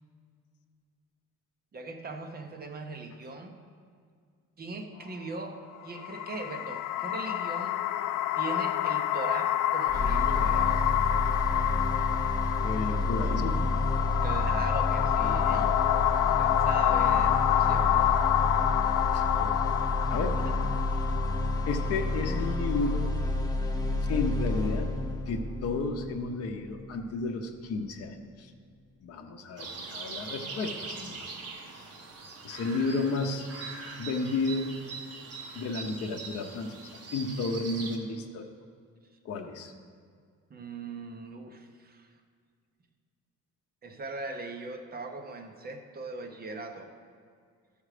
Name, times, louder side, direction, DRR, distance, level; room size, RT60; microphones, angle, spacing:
voice 1, 1.7-3.5 4.6-7.8 8.3-10.8 14.2-15.8 16.4-18.1 20.4-20.5 40.5-42.1 43.8-46.9, right 3 dB, 30° right, 4 dB, 0.8 m, -40 dB
sound 1, 5.8-23.0, left 12 dB, 85° left, 0.5 m, -28 dB
sound 2, 9.9-27.9, left 2 dB, 15° left, 0.7 m, -30 dB
voice 2, 12.6-13.6 19.1-19.8 20.1-20.6 21.7-23.1 24.1-24.9 25.3-28.5 29.0-31.2 32.4-33.5 34.0-34.7 35.5-38.5 39.2-39.7, left 3 dB, 50° left, 3 dB, 0.8 m, -32 dB
sound 3, 29.6-38.0, right 4 dB, 50° right, 1.2 m, -42 dB
13.5 x 5.2 x 4.9 m, 2.1 s
cardioid pair, 170°, 31 cm